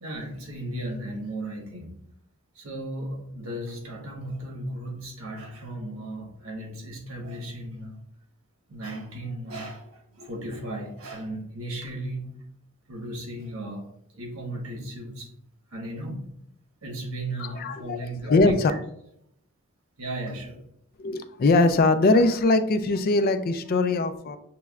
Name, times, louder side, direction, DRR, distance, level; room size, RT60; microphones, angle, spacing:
voice 1, 0.0-1.9 2.5-8.0 8.7-12.5 12.9-13.9 14.1-15.3 15.7-16.3 16.8-18.6 20.0-20.6, right 1 dB, 85° right, 1 dB, 1.2 m, -35 dB
voice 2, 17.4-18.0 18.3-18.7 21.0-24.4, left 2 dB, 45° left, 10 dB, 0.4 m, -21 dB
6.8 x 3.1 x 2.3 m, 0.74 s
head